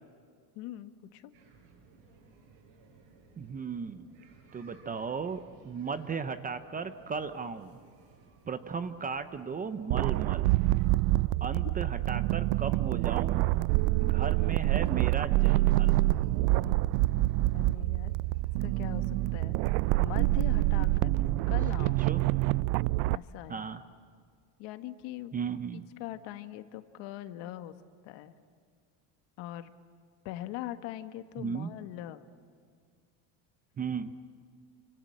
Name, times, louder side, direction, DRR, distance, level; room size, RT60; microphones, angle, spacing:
voice 1, 0.5-1.3 11.5-11.7 17.5-18.1 18.6-19.6 20.0-21.1 21.5-22.0 23.1-23.6 24.6-25.3 26.0-27.7 28.0-28.4 29.4-29.7 30.2-32.2, left 14 dB, 65° left, 10 dB, 1.6 m, -41 dB
sound 1, 1.3-20.3, right 4 dB, 60° right, 8.0 m, -59 dB
voice 2, 3.4-4.2 4.5-7.8 8.5-10.5 11.4-13.4 14.0-16.0 21.8-22.3 23.5-23.8 25.3-25.8 31.4-31.7 33.8-34.1, right 5 dB, 20° right, 11 dB, 0.6 m, -36 dB
sound 2, 9.9-23.2, right 19 dB, 85° right, 0.6 m, -26 dB
29.0 x 25.5 x 7.7 m, 2.1 s
cardioid pair, 165°, 47 cm